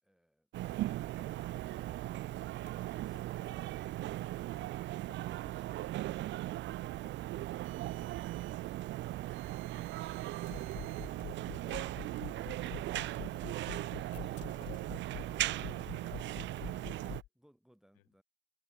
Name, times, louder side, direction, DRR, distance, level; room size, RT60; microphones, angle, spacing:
sound 1, 0.5-17.2, right 15 dB, 30° right, 0.6 m, -38 dB
sound 2, 0.7-0.8 1.2-1.3 1.6-2.2 2.7-2.8 3.2-3.3 3.5-4.2 4.6-4.7 5.1-5.2 5.5-6.1 6.6-6.7 7.1-7.2 7.4-8.1 10.5-17.3, left 15 dB, 30° left, 0.5 m, -48 dB
sound 3, 7.6-8.6 9.3-11.2, right 16 dB, 80° right, 6.3 m, -59 dB
voice 1, 15.4-17.2 18.0-18.1, left 18 dB, 80° left, 4.3 m, -63 dB
voice 2, 16.6-18.2, equal, ahead, 4.3 m, -68 dB
supercardioid pair, 130°, 40 cm